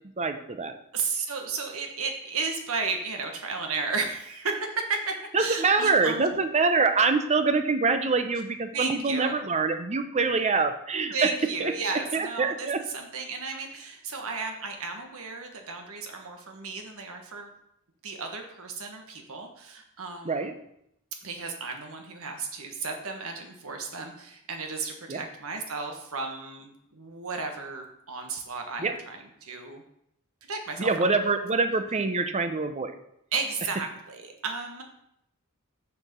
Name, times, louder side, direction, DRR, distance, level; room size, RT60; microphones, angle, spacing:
voice 1, 0.2-0.7 5.3-11.3 11.6-11.7 12.1-12.8 20.2-20.5 25.1-25.2 28.8-28.9 30.8-32.9, right 4 dB, 30° right, 8 dB, 0.7 m, -25 dB
voice 2, 0.9-6.3 8.7-9.4 11.1-12.7 12.9-17.5 18.0-20.5 21.2-29.8 30.5-30.9 33.3-34.8, right 4 dB, 65° right, 4 dB, 1.4 m, -34 dB
6.9 x 4.7 x 6.9 m, 0.77 s
head